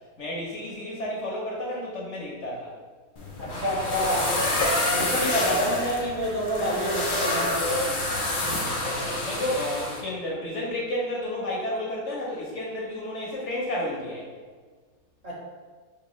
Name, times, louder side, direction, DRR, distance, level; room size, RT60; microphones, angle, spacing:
voice 1, 0.2-2.7 8.4-14.3, left 1 dB, 55° left, -4 dB, 0.9 m, -32 dB
sound 1, 3.2-10.0, left 1 dB, 80° left, 0.4 m, -27 dB
voice 2, 3.4-4.4 4.9-7.6 15.2-15.3, equal, 45° right, -8 dB, 1.7 m, -27 dB
5.8 x 2.9 x 3.0 m, 1.5 s
omnidirectional pair, 1.9 m